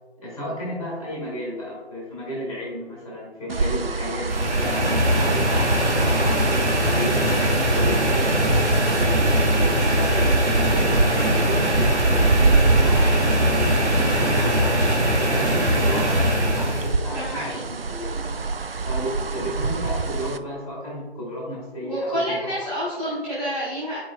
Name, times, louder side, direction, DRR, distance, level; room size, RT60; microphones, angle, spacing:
voice 1, 0.2-7.3 7.6-15.0 15.3-18.3 18.9-22.5, equal, 5° right, -15 dB, 1.5 m, -33 dB
sound 1, 3.5-20.4, right 3 dB, 55° right, 0.4 m, -26 dB
sound 2, 4.3-16.9, equal, 75° right, 1.4 m, -21 dB
voice 2, 17.1-17.6 21.8-24.0, equal, 10° left, -13 dB, 1.4 m, -28 dB
10.5 x 4.9 x 2.3 m, 1.3 s
figure-of-eight pair, 165°, 34 cm